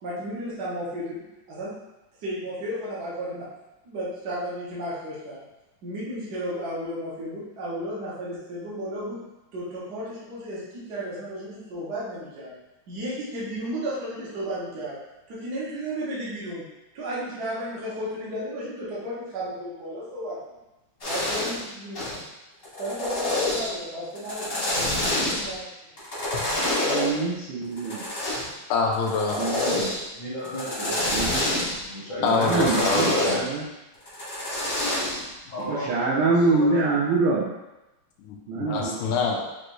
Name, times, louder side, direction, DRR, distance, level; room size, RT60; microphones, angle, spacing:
voice 1, 0.0-1.2 1.5-1.7 2.2-3.5 3.8-5.4 5.8-9.2 9.5-12.5 12.9-15.0 15.3-16.6 16.9-20.4 21.1-22.2 22.8-25.7, equal, 55° right, -8 dB, 1.1 m, -33 dB
sound 1, 21.0-21.6 21.9-22.2 22.6-23.8 24.2-25.5 26.0-27.1 27.8-28.5 28.9-30.0 30.4-31.8 32.3-33.4 34.1-35.2, left 1 dB, 35° left, 0.9 m, -27 dB
voice 2, 26.9-28.0 29.4-29.9 31.1-31.4 32.2-33.6 35.6-37.5 38.5-39.1, right 3 dB, 85° right, -6 dB, 1.2 m, -25 dB
voice 3, 28.7-29.4 32.2-33.4 38.2-39.4, left 4 dB, 85° left, 1 dB, 2.1 m, -26 dB
voice 4, 29.9-31.2 31.5-33.4 35.5-36.8, equal, 55° left, -9 dB, 1.3 m, -35 dB
6.4 x 2.6 x 3.1 m, 1.0 s
omnidirectional pair, 3.3 m